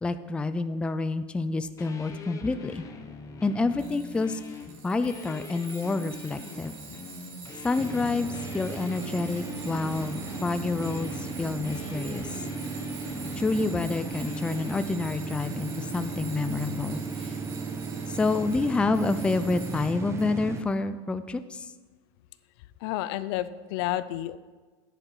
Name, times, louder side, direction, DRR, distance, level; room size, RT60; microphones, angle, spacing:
voice 1, 0.0-2.8 3.4-4.4 4.8-6.7 7.6-12.4 13.4-17.4 18.1-21.7, left 3 dB, 10° left, 11 dB, 0.4 m, -28 dB
sound 1, 1.8-14.8, left 4 dB, 25° left, 1.2 m, -43 dB
Tools, 3.8-20.3, right 6 dB, 65° right, 2.7 m, -46 dB
sound 2, 7.8-20.6, right 4 dB, 20° right, 1.0 m, -36 dB
voice 2, 22.8-24.4, left 14 dB, 65° left, 15 dB, 0.5 m, -30 dB
9.9 x 9.7 x 4.7 m, 1.3 s
supercardioid pair, 135°, 14 cm